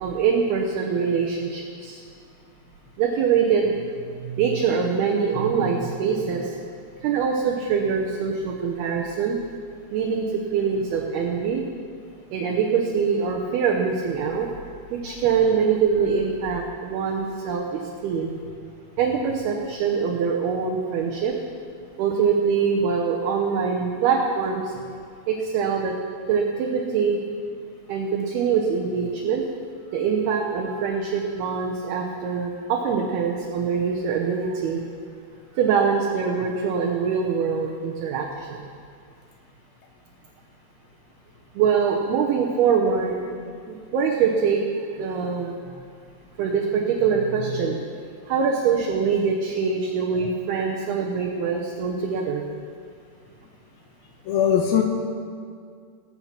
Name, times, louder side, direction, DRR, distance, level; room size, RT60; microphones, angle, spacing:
voice 1, 0.0-2.0 3.0-3.7 4.2-6.6 7.0-9.4 9.9-11.6 12.3-14.5 14.9-18.4 19.0-21.3 22.0-24.7 25.3-25.9 26.3-27.2 27.9-29.4 29.9-34.8 35.6-38.6 41.6-43.2 43.7-44.6 45.0-45.8 46.4-48.0 48.3-52.4, right 6 dB, 75° right, -1 dB, 2.8 m, -24 dB
voice 2, 54.3-54.8, left 9 dB, 70° left, 2 dB, 2.6 m, -20 dB
20.0 x 7.7 x 5.9 m, 2.2 s
omnidirectional pair, 4.9 m